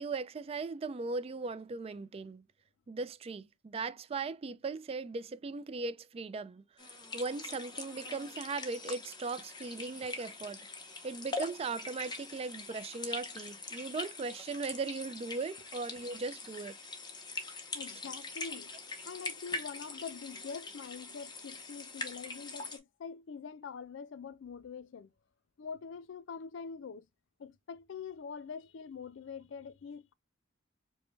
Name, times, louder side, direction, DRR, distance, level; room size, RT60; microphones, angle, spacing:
voice 1, 0.0-2.4 2.9-10.6 11.0-16.8, right 4 dB, 30° right, 0.3 m, -38 dB
sound 1, 6.8-22.8, left 3 dB, 25° left, 0.8 m, -43 dB
voice 2, 17.7-18.7 19.0-25.1 25.6-27.1 27.4-30.1, left 6 dB, 80° left, 0.4 m, -44 dB
5.0 x 2.1 x 3.2 m
head